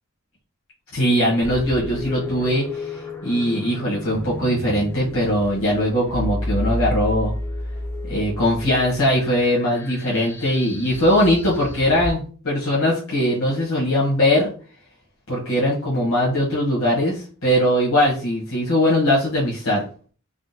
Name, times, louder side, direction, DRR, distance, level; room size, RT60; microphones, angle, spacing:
voice 1, 0.9-2.8 3.2-7.3 8.1-14.5 15.3-19.8, equal, 70° left, -6 dB, 1.0 m, -20 dB
sound 1, 1.4-12.1, left 1 dB, 10° left, 0.3 m, -31 dB
3.6 x 2.1 x 2.6 m, 0.41 s
head